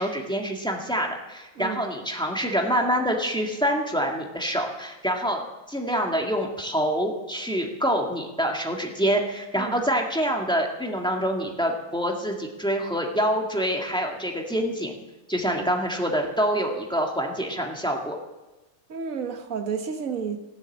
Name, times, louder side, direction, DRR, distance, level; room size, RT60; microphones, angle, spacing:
voice 1, 0.0-5.4 5.7-14.9 15.3-18.2, equal, 5° left, 0 dB, 1.7 m, -26 dB
voice 2, 18.9-20.4, right 6 dB, 50° right, 5 dB, 1.6 m, -31 dB
17.0 x 8.0 x 7.3 m, 1.1 s
omnidirectional pair, 2.0 m